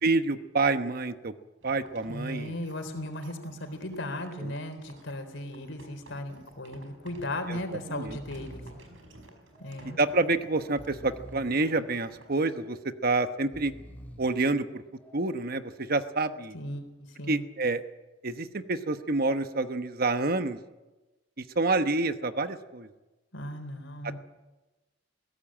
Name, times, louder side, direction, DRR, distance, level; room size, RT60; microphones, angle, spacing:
voice 1, 0.0-1.3 1.6-2.5 4.4-4.5 7.5-7.6 7.9-8.2 10.0-12.8 13.0-13.7 14.2-14.8 15.1-16.6 17.3-17.8 18.2-20.6 21.6-22.9, right 3 dB, 50° right, 10 dB, 1.1 m, -28 dB
sound 1, 1.6-12.4, right 1 dB, 80° right, 5.1 m, -53 dB
voice 2, 2.1-8.6 9.6-10.0 16.5-17.4 23.3-24.2, left 1 dB, 75° left, 6 dB, 3.8 m, -37 dB
Breathing, 5.8-6.2 6.5-6.6 7.5-7.7 7.9-8.9 9.5-10.1 10.6-11.6 12.2-12.8 13.4-14.4 15.0-15.6, equal, 10° left, 3.3 m, -49 dB
21.0 x 17.0 x 8.9 m, 1.1 s
head